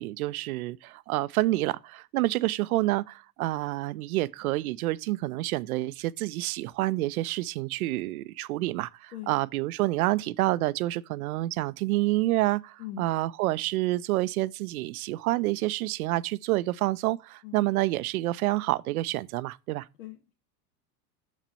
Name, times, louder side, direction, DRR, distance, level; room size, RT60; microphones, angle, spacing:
voice 1, 0.0-19.9, right 17 dB, 60° right, 0.6 m, -28 dB
voice 2, 20.0-20.3, left 13 dB, 70° left, 1.3 m, -40 dB
6.7 x 6.1 x 4.2 m
hypercardioid pair, 95°, 49 cm